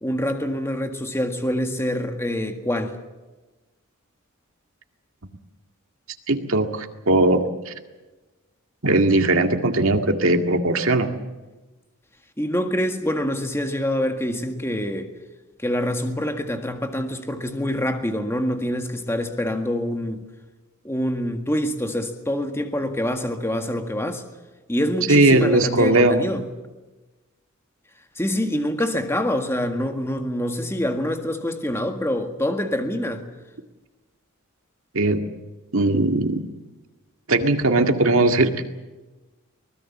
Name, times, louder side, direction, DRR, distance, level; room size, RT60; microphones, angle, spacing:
voice 1, 0.0-3.0 12.4-15.1 15.6-20.2 20.8-24.2 24.7-26.4 28.2-33.3, left 1 dB, 10° left, 1.7 m, -25 dB
voice 2, 6.3-7.7 8.8-11.1 25.1-26.2 34.9-35.2 35.7-36.4 37.3-38.6, right 2 dB, 70° right, 2.0 m, -19 dB
24.0 x 20.0 x 7.3 m
head